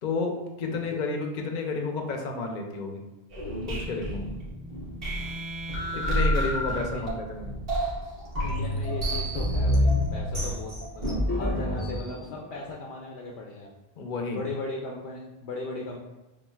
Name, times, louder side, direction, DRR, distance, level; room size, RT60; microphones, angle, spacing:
voice 1, 0.0-3.0 3.7-4.2 5.9-7.5 14.0-14.4, left 3 dB, 55° left, 3 dB, 0.7 m, -31 dB
voice 2, 0.7-1.0 5.9-6.2 6.7-7.1 8.4-13.7 14.3-16.0, left 2 dB, 85° left, -1 dB, 0.9 m, -38 dB
sound 1, 3.3-11.1, equal, 65° right, 1.6 m, -28 dB
sound 2, 8.4-12.7, left 1 dB, 10° left, 0.6 m, -34 dB
7.1 x 2.4 x 2.3 m, 1.0 s
omnidirectional pair, 1.0 m